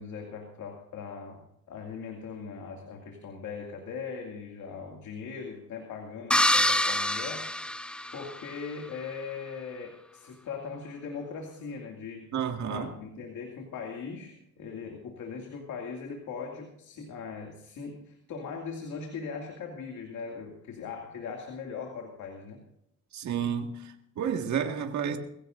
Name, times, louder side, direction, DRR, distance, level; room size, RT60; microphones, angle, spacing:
voice 1, 0.0-1.4 1.7-7.8 8.1-12.3 12.7-22.6, left 5 dB, 75° left, 1 dB, 2.3 m, -40 dB
sound 1, 6.3-8.5, left 1 dB, 5° left, 0.5 m, -26 dB
voice 2, 12.3-12.9 23.1-25.2, right 8 dB, 70° right, 4 dB, 1.9 m, -31 dB
21.5 x 16.0 x 2.6 m, 0.79 s
cardioid pair, 90°, 30 cm